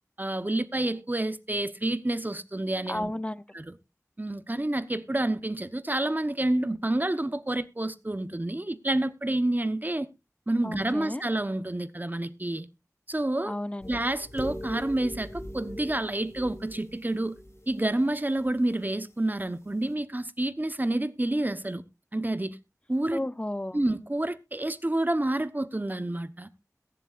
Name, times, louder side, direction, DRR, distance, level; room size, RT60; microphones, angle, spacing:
voice 1, 0.2-3.1 3.5-3.7 4.2-10.1 10.5-12.7 13.1-13.5 13.9-17.4 17.7-21.8 22.1-22.6 22.9-23.2 23.7-26.5, right 1 dB, 30° right, 0.9 m, -29 dB
voice 2, 2.9-3.4 10.6-11.2 13.4-14.0 23.1-23.8, left 1 dB, 20° left, 0.6 m, -33 dB
sound 1, 13.8-17.9 18.3-18.7, left 1 dB, 55° left, 3.1 m, -41 dB
22.0 x 7.4 x 2.5 m
wide cardioid pair, 50°, 6 cm